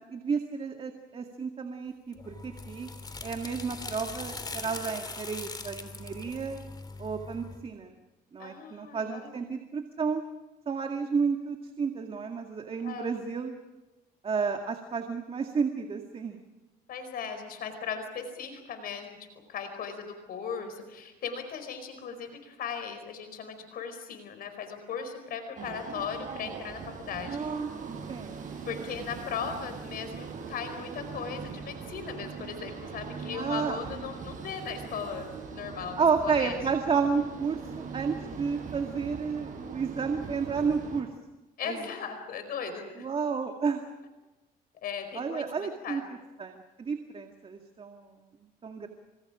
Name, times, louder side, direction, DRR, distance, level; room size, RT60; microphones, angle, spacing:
voice 1, 0.1-2.9 3.2-6.6 7.0-8.0 8.3-10.2 10.7-13.5 14.2-16.4 27.3-27.7 28.1-28.4 33.3-33.8 36.0-41.1 41.6-41.8 43.0-43.8 45.1-46.0 46.4-48.1 48.6-48.9, right 5 dB, 35° right, 4 dB, 2.1 m, -31 dB
sound 1, 2.1-7.6, left 3 dB, 25° left, 3.3 m, -41 dB
voice 2, 8.4-9.5 12.8-13.2 16.9-19.2 19.5-27.6 28.7-36.6 41.6-43.2 44.8-46.0, left 6 dB, 60° left, 7 dB, 4.7 m, -38 dB
sound 2, 25.6-41.0, right 5 dB, 50° right, 6.6 m, -41 dB
29.5 x 27.5 x 5.1 m, 1.1 s
cardioid pair, 110°, 17 cm